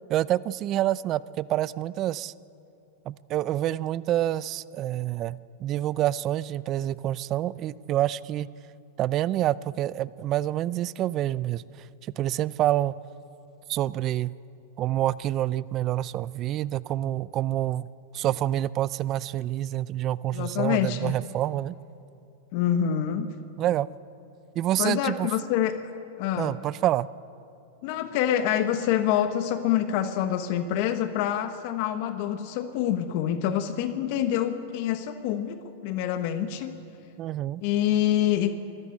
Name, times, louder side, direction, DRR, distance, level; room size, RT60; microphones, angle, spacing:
voice 1, 0.1-2.3 3.1-8.5 9.0-11.6 12.2-12.9 13.7-14.3 14.8-17.9 18.1-21.8 23.6-23.9 24.6-25.3 26.4-27.1 37.2-37.6, right 13 dB, 40° right, 20 dB, 0.5 m, -27 dB
voice 2, 20.3-21.1 22.5-23.3 24.8-25.7 26.2-26.6 27.8-36.8 37.6-38.5, left 10 dB, 55° left, 9 dB, 1.2 m, -26 dB
25.5 x 13.5 x 8.4 m, 2.7 s
hypercardioid pair, 115°, 0 cm